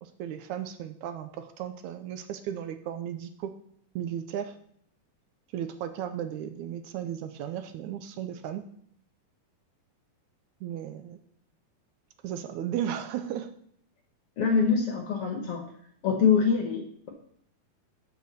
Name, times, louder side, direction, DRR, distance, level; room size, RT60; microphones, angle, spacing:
voice 1, 0.0-3.5 4.0-4.6 5.5-8.6 10.6-11.2 12.2-13.5, right 10 dB, 80° right, 9 dB, 2.0 m, -35 dB
voice 2, 14.4-15.6 16.0-17.1, left 6 dB, 60° left, 3 dB, 1.8 m, -24 dB
7.9 x 6.6 x 6.6 m, 0.65 s
omnidirectional pair, 3.6 m